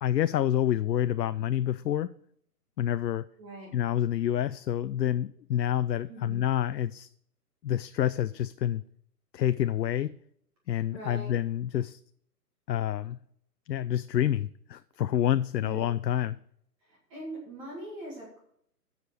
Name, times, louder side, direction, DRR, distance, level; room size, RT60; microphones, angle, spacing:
voice 1, 0.0-2.1 2.8-3.2 3.7-7.1 7.6-8.8 9.3-10.2 10.7-12.0 12.7-13.2 13.7-16.4, left 11 dB, 85° left, 0.6 m, -28 dB
voice 2, 3.4-3.7 6.1-6.4 10.9-11.3 15.6-15.9 16.8-18.4, right 1 dB, 20° right, 2.0 m, -42 dB
7.7 x 6.7 x 6.8 m
hypercardioid pair, 160°, 49 cm